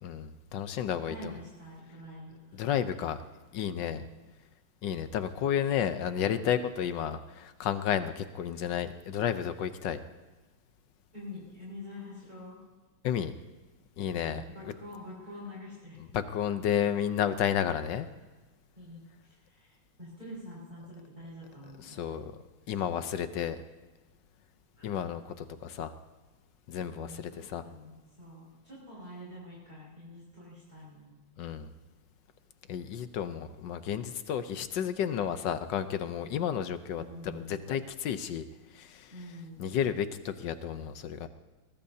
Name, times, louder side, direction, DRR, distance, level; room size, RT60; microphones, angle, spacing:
voice 1, 0.0-1.3 2.5-3.2 3.5-4.0 4.8-10.0 13.0-13.3 14.0-14.4 16.0-18.1 21.8-22.3 22.7-23.6 24.8-25.9 26.7-27.6 31.4-31.7 32.7-38.4 38.7-39.1 39.6-41.3, left 9 dB, 70° left, 11 dB, 1.4 m, -32 dB
voice 2, 1.0-2.6 3.8-4.1 5.6-5.7 11.1-12.6 14.1-16.0 18.8-22.0 24.8-24.9 26.9-31.1 37.0-37.7 39.1-39.7, left 1 dB, 20° right, -7 dB, 5.4 m, -46 dB
21.5 x 21.0 x 2.8 m, 1.2 s
omnidirectional pair, 2.2 m